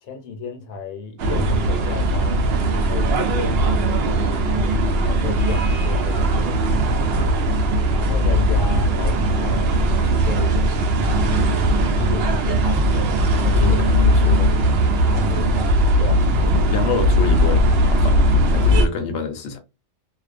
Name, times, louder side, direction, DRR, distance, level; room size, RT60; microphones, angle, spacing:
voice 1, 0.0-2.5 2.7-7.0 7.9-10.7 11.3-14.1 14.4-14.6 15.1-16.3, left 4 dB, 80° left, 1.1 m, -34 dB
sound 1, 1.2-18.9, right 1 dB, 65° right, 0.6 m, -19 dB
voice 2, 13.6-14.6 16.4-19.6, left 4 dB, 60° left, 0.8 m, -28 dB
2.4 x 2.1 x 2.4 m
omnidirectional pair, 1.4 m